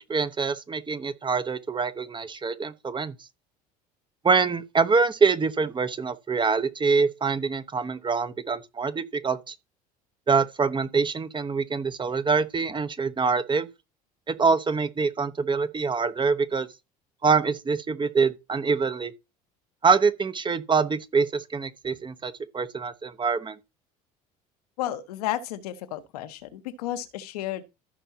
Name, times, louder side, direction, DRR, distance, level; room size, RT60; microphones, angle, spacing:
voice 1, 0.1-3.1 4.2-9.5 10.3-13.7 14.3-16.7 17.2-19.1 19.8-23.6, right 5 dB, 25° right, 1.1 m, -25 dB
voice 2, 24.8-27.6, left 13 dB, 75° left, 1.3 m, -32 dB
14.5 x 5.6 x 2.9 m
hypercardioid pair, 70°, 20 cm